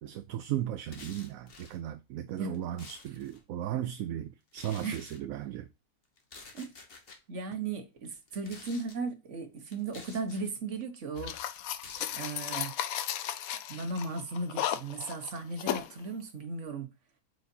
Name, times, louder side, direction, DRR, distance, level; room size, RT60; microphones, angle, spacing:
voice 1, 0.0-5.6, right 11 dB, 70° right, 0.9 m, -36 dB
sound 1, 0.8-1.8 2.4-3.4 4.5-5.2 6.2-7.2 8.2-9.0 9.7-10.5 11.3-12.3, left 3 dB, 40° left, 1.3 m, -50 dB
voice 2, 7.3-11.3 12.1-12.8 13.7-16.9, right 3 dB, 55° right, 1.5 m, -36 dB
sound 2, 11.2-15.9, left 11 dB, 75° left, 1.0 m, -35 dB
8.3 x 4.9 x 2.7 m
omnidirectional pair, 1.6 m